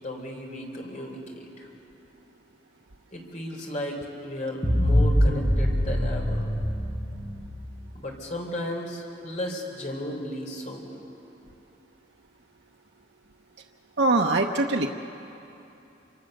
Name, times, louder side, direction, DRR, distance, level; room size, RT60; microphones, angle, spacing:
voice 1, 0.0-1.5 3.1-6.5 7.9-10.9, left 1 dB, 40° left, 0 dB, 3.7 m, -34 dB
sound 1, 4.6-7.7, equal, 25° left, 7.3 m, -24 dB
voice 2, 14.0-14.9, right 2 dB, 75° right, 1 dB, 0.9 m, -22 dB
27.0 x 25.0 x 6.6 m, 3.0 s
head